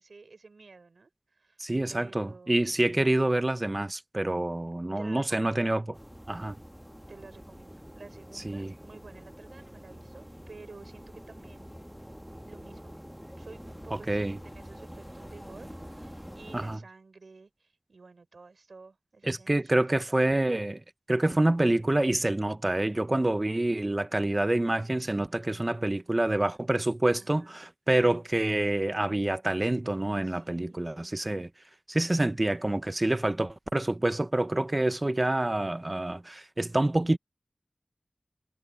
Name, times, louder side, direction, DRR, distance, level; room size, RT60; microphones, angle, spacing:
voice 1, 0.0-1.6 1.9-2.8 4.9-5.6 6.4-6.5 7.1-11.8 12.5-13.0 13.4-20.3 26.0-26.5 27.2-27.7 30.2-31.2, right 3 dB, 90° right, 6.3 m, -52 dB
voice 2, 1.6-5.9 6.3-6.6 8.3-8.7 13.9-14.4 16.5-16.8 19.2-20.8 21.1-31.5 31.9-37.2, right 1 dB, 35° right, 0.8 m, -27 dB
sound 1, 5.9-16.8, equal, 5° right, 1.5 m, -46 dB
cardioid pair, 40°, 0 cm